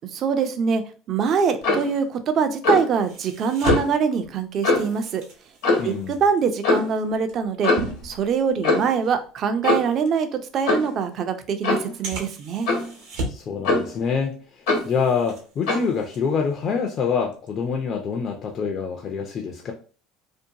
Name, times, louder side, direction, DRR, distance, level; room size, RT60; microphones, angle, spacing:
voice 1, 0.1-0.8 1.1-5.2 5.8-7.7 8.0-12.7, right 6 dB, 50° right, 8 dB, 0.4 m, -23 dB
Clock, 1.6-1.9 2.6-2.9 3.6-3.9 4.6-5.0 5.6-5.9 6.6-6.9 7.6-8.0 8.6-9.0 9.6-10.0 10.7-10.9 11.6-11.9 12.7-12.9 13.6-14.0 14.7-14.9 15.7-15.9, left 3 dB, 80° left, 1.0 m, -22 dB
sound 1, 3.1-8.9 9.2-9.4 10.1-10.2 11.0-11.1 12.0-13.6 13.9-14.3 14.7-16.8 17.2-17.5, right 1 dB, 70° right, 0.8 m, -35 dB
voice 2, 5.8-6.2 13.3-14.4 14.8-19.7, left 5 dB, 45° left, 2 dB, 0.4 m, -26 dB
2.6 x 2.2 x 2.7 m, 0.38 s
supercardioid pair, 90°, 0 cm